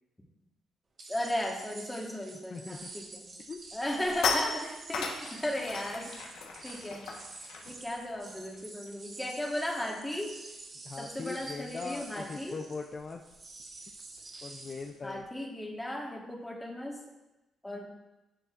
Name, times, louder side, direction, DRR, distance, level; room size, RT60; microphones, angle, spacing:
sound 1, 1.0-15.0, right 3 dB, 40° right, 1.5 m, -48 dB
voice 1, 1.1-3.3 3.7-6.3 6.6-7.1 7.6-10.4 11.0-12.6 15.0-17.0 17.6-17.9, left 1 dB, 10° left, 0 dB, 1.5 m, -36 dB
voice 2, 2.5-2.9 3.5-3.6 10.8-13.2 14.4-15.2, left 4 dB, 40° left, 3 dB, 0.5 m, -40 dB
sound 2, 2.8-3.1 3.5-9.4 9.7-9.9 10.2-15.2, left 4 dB, 85° left, 1.2 m, -39 dB
10.0 x 6.8 x 2.5 m, 1.0 s
cardioid pair, 90°, 0 cm